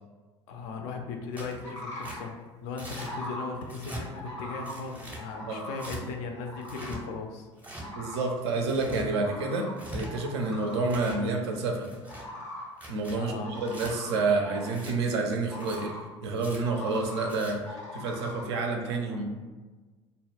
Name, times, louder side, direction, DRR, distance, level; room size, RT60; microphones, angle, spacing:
voice 1, 0.5-2.3 2.6-7.5 13.1-13.6, left 4 dB, 55° left, 3 dB, 0.4 m, -37 dB
Tearing, 1.3-1.6 2.0-2.2 2.8-3.1 3.6-4.0 4.6-5.2 5.8-6.0 6.6-7.0 7.6-7.8 8.5-9.0 9.6-10.1 10.7-11.2 11.8-12.2 12.7-13.2 13.7-13.9 14.7-14.9 15.5-15.8 16.3-16.6 17.2-17.5, right 1 dB, 10° right, 0.6 m, -42 dB
sound 1, 1.6-2.3 2.9-3.5 4.1-4.7 5.1-5.9 6.3-7.0 7.8-8.3 9.1-9.7 10.0-11.2 12.1-12.7 13.4-14.8 15.5-16.0 16.6-17.3 17.6-18.4, left 1 dB, 85° left, 0.6 m, -41 dB
voice 2, 7.9-11.9 12.9-15.9 16.2-19.2, right 3 dB, 65° right, 2 dB, 0.4 m, -29 dB
2.1 x 2.0 x 3.3 m, 1.3 s
figure-of-eight pair, 65°, 15 cm